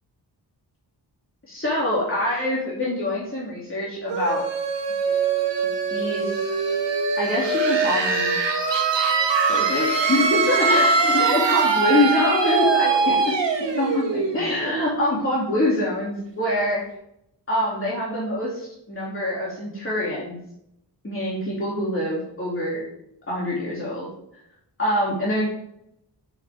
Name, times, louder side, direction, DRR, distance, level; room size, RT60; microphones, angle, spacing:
voice 1, 1.5-4.4 5.9-6.5 7.2-8.3 9.5-16.8 17.5-20.4 21.0-22.8 23.3-24.1 24.8-25.5, left 1 dB, 30° left, -6 dB, 3.1 m, -25 dB
sound 1, 4.1-15.6, right 4 dB, 80° right, 1.7 m, -22 dB
9.8 x 6.5 x 3.7 m, 0.77 s
wide cardioid pair, 75°, 42 cm